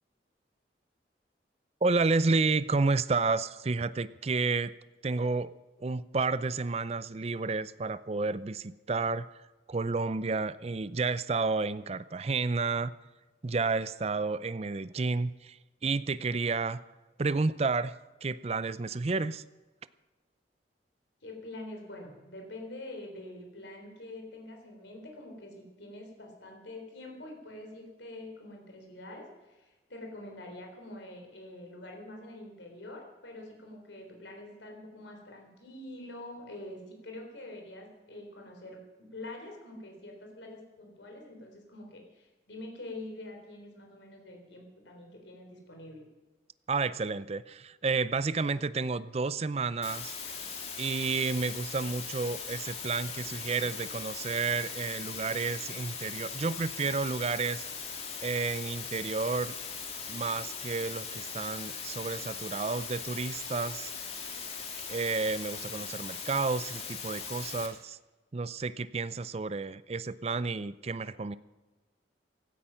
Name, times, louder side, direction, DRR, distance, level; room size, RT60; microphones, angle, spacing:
voice 1, 1.8-4.7 5.0-5.5 5.8-9.3 9.7-12.9 13.4-16.8 17.2-18.0 18.2-19.4 46.7-50.1 50.8-57.6 58.2-59.5 60.1-63.9 64.9-68.0 68.3-71.4, right 4 dB, 35° right, 16 dB, 0.5 m, -31 dB
voice 2, 21.2-46.1, left 1 dB, 85° left, 2 dB, 3.8 m, -45 dB
sound 1, 49.8-67.7, left 6 dB, 35° left, 2.3 m, -40 dB
16.5 x 13.0 x 5.7 m, 1.2 s
head